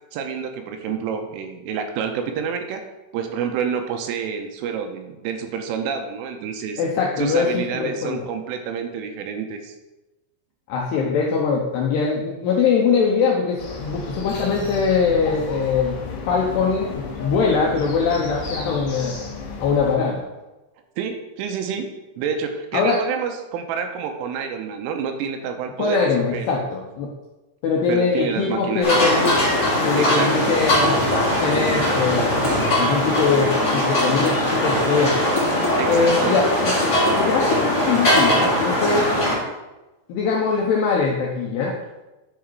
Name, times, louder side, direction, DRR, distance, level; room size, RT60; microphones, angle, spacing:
voice 1, 0.1-2.8 3.1-6.8 7.2-9.8 21.0-21.9 22.2-26.7 27.9-28.9 30.0-30.5 35.8-36.4, right 6 dB, 85° right, 5 dB, 3.2 m, -28 dB
voice 2, 6.8-8.2 10.7-16.0 16.3-19.2 19.6-20.3 22.7-23.0 25.8-27.1 27.6-29.3 29.9-31.0 31.4-35.2 35.9-36.7 37.2-39.1 40.1-41.8, left 5 dB, 80° left, -2 dB, 2.4 m, -22 dB
sound 1, 13.6-19.9, left 4 dB, 55° left, 3.7 m, -33 dB
sound 2, 28.8-39.4, left 1 dB, 25° left, 2.4 m, -20 dB
10.5 x 4.9 x 4.6 m, 1.0 s
omnidirectional pair, 5.9 m